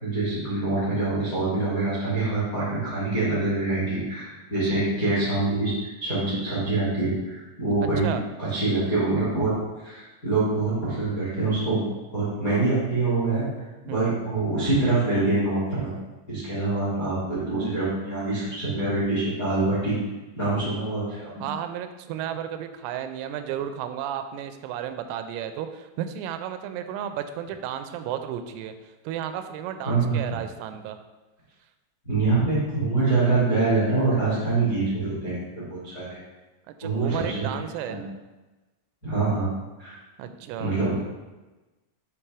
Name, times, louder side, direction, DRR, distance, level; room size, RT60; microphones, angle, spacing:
voice 1, 0.0-5.7 6.0-8.1 8.4-9.5 9.8-11.8 12.1-13.4 13.8-15.9 16.3-20.0 20.3-21.3 29.8-30.1 32.0-36.2 36.8-37.5 37.8-38.0 39.0-39.5 39.8-39.9 40.6-40.9, right 3 dB, 50° left, -9 dB, 1.0 m, -25 dB
voice 2, 7.8-8.2 13.9-14.2 21.4-31.0 36.7-38.0 40.2-40.7, right 9 dB, 85° right, 8 dB, 3.2 m, -33 dB
8.2 x 3.0 x 4.7 m, 1.1 s
omnidirectional pair, 5.9 m